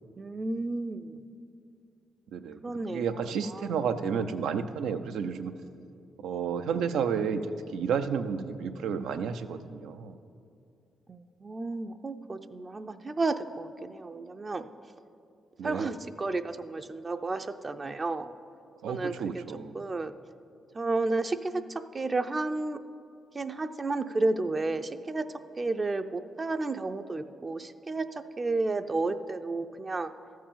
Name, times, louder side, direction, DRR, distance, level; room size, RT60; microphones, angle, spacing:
voice 1, 0.2-1.2 2.6-3.2 3.5-3.7 11.1-14.7 15.6-18.3 18.9-19.4 19.7-20.1 20.7-22.8 23.3-30.1, right 3 dB, 30° right, 8 dB, 0.5 m, -32 dB
voice 2, 2.9-5.5 6.2-7.5 7.7-10.2 15.6-15.9 18.8-19.7, right 6 dB, 90° right, 8 dB, 0.5 m, -31 dB
13.0 x 4.6 x 7.4 m, 2.5 s
cardioid pair, 75°, 0 cm